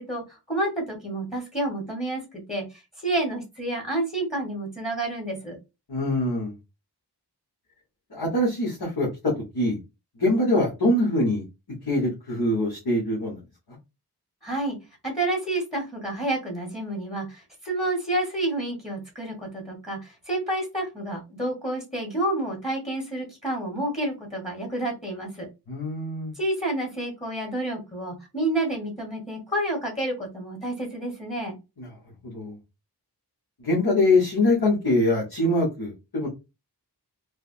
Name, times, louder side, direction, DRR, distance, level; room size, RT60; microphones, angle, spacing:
voice 1, 0.0-5.6 14.4-14.8 15.0-25.5 26.3-31.6, right 1 dB, 15° left, -1 dB, 1.1 m, -29 dB
voice 2, 5.9-6.5 8.1-9.8 10.2-11.4 11.8-13.4 25.7-26.3 31.8-31.9 32.3-32.6 33.6-36.3, left 1 dB, 65° left, -6 dB, 1.2 m, -23 dB
3.3 x 2.1 x 2.5 m, 0.25 s
wide cardioid pair, 50°, 40 cm